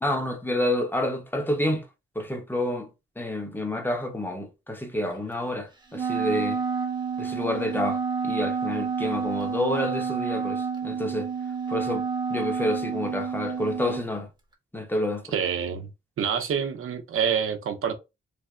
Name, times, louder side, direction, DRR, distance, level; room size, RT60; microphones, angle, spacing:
voice 1, 0.0-1.9 2.1-2.9 3.2-6.6 7.2-11.3 11.7-12.0 12.3-14.3 14.7-15.2, left 1 dB, 10° left, 0.9 m, -29 dB
Wind instrument woodwind instrument, 5.9-14.1, right 6 dB, 20° right, 1.0 m, -29 dB
voice 2, 15.3-15.9 16.2-17.9, right 7 dB, 85° right, 0.7 m, -27 dB
3.4 x 2.1 x 3.6 m
cardioid pair, 90°, 21 cm